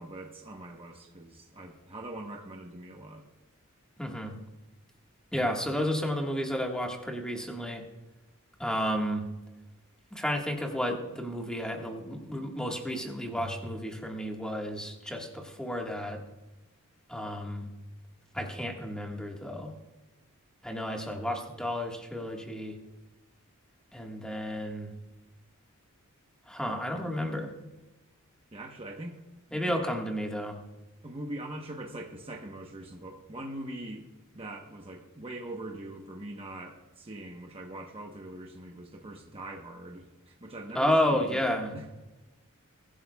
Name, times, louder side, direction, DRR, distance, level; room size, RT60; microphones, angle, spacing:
voice 1, 0.0-3.2 28.5-29.2 29.5-29.9 31.0-34.0 34.3-41.4 41.7-41.8, right 1 dB, 25° right, 0 dB, 1.0 m, -42 dB
voice 2, 4.0-4.3 5.3-7.8 8.6-9.3 10.1-16.2 17.1-17.7 18.3-19.7 20.6-22.8 23.9-24.9 26.5-27.5 29.5-30.6 40.7-41.8, equal, 5° left, 1 dB, 1.6 m, -31 dB
22.5 x 11.5 x 2.3 m, 1.1 s
head